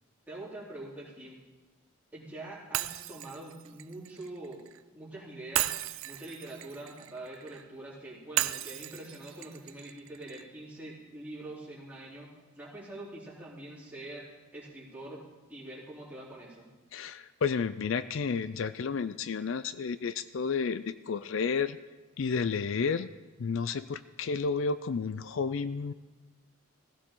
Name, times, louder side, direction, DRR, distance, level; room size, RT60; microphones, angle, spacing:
voice 1, 0.3-1.4 2.1-4.6 4.9-5.7 6.0-14.2 14.5-16.7, right 1 dB, 10° right, -7 dB, 3.6 m, -44 dB
Shatter, 2.7-4.8 5.5-7.6 8.4-10.5, right 14 dB, 70° right, 0.4 m, -35 dB
voice 2, 16.9-21.8 22.2-23.1 23.4-25.9, left 5 dB, 65° left, 14 dB, 0.4 m, -31 dB
17.5 x 16.0 x 3.8 m, 1.2 s
head